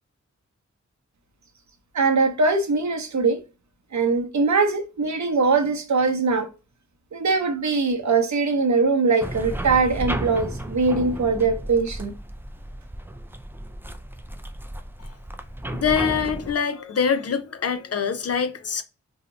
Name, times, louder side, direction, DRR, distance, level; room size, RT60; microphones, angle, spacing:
voice 1, 1.9-3.4 3.9-6.5 7.1-12.1, right 4 dB, 70° right, 0.7 m, -21 dB
sound 1, 9.2-16.5, right 1 dB, 5° right, 0.4 m, -33 dB
voice 2, 15.7-18.8, left 6 dB, 55° left, 0.5 m, -24 dB
2.7 x 2.0 x 3.8 m
cardioid pair, 45°, 29 cm